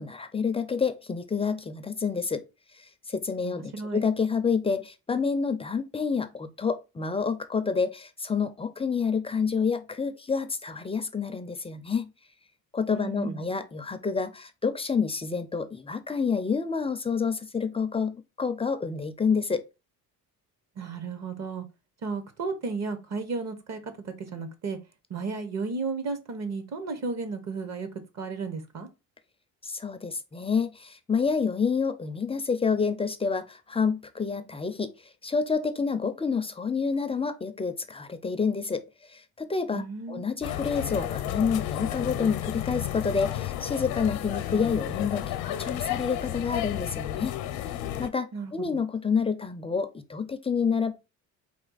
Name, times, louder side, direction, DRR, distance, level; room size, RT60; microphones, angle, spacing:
voice 1, 0.0-2.4 2.7-12.1 12.7-19.6 29.6-34.9 35.2-38.8 39.1-45.2 45.6-47.7 48.0-50.9, left 5 dB, 15° left, 0.4 m, -28 dB
voice 2, 3.4-4.0 12.9-13.4 20.8-21.6 22.0-24.8 25.1-27.9 28.1-28.9 39.7-40.3 48.3-48.8, right 4 dB, 45° right, 1.0 m, -34 dB
sound 1, 40.4-48.1, left 12 dB, 80° left, 0.7 m, -32 dB
4.3 x 2.8 x 3.9 m
cardioid pair, 125°, 36 cm